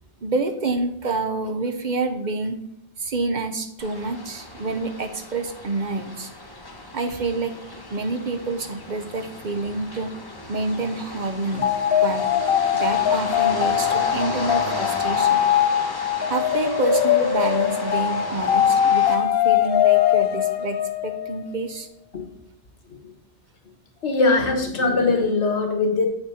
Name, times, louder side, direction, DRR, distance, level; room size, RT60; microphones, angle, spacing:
voice 1, 0.2-2.6 3.0-6.3 6.9-7.6 7.9-10.1 10.5-11.7 12.0-12.3 12.7-15.4 16.3-21.9, right 3 dB, 50° right, 8 dB, 0.7 m, -28 dB
sound 1, 3.8-19.2, left 2 dB, 20° left, 1.0 m, -35 dB
sound 2, 11.6-21.4, left 10 dB, 65° left, 0.8 m, -21 dB
voice 2, 24.0-26.1, left 3 dB, 80° left, 3 dB, 1.5 m, -21 dB
7.8 x 6.0 x 4.3 m, 0.76 s
omnidirectional pair, 1.1 m